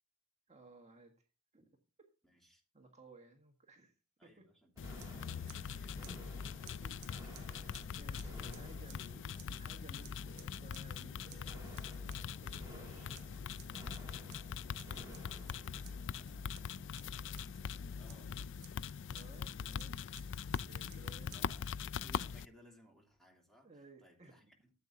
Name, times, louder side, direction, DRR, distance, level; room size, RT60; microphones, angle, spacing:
voice 1, 0.5-1.1 1.5-1.7 2.7-3.9 4.2-4.5 5.4-5.5 6.7-12.0 12.4-13.3 19.1-21.5 23.6-24.5, right 3 dB, 30° right, 2 dB, 1.6 m, -59 dB
voice 2, 2.2-2.6 4.2-6.1 7.1-7.3 17.6-18.3 18.7-18.8 21.3-24.7, equal, ahead, 0 dB, 2.9 m, -64 dB
sound 1, 4.8-22.4, left 7 dB, 55° left, 0.4 m, -42 dB
sound 2, 4.8-18.2, right 1 dB, 15° right, 2.7 m, -56 dB
Scissors, 4.9-5.7 6.0-9.6 10.0-11.0 11.3-12.8 13.1-17.6 18.1-19.4 19.8-21.7, right 13 dB, 50° right, 0.6 m, -61 dB
14.0 x 8.1 x 2.7 m, 0.34 s
head